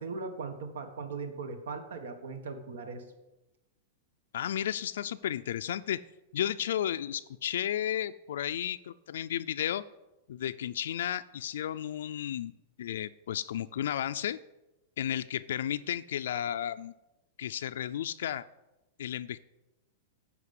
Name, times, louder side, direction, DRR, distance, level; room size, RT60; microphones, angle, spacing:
voice 1, 0.0-3.0, right 4 dB, 85° right, 7 dB, 1.4 m, -39 dB
voice 2, 4.3-6.0 6.3-9.8 10.3-12.5 12.8-14.4 15.0-16.9 17.4-18.4 19.0-19.4, left 10 dB, 70° left, 10 dB, 0.3 m, -33 dB
11.0 x 5.0 x 8.4 m, 1.0 s
supercardioid pair, 175°, 0 cm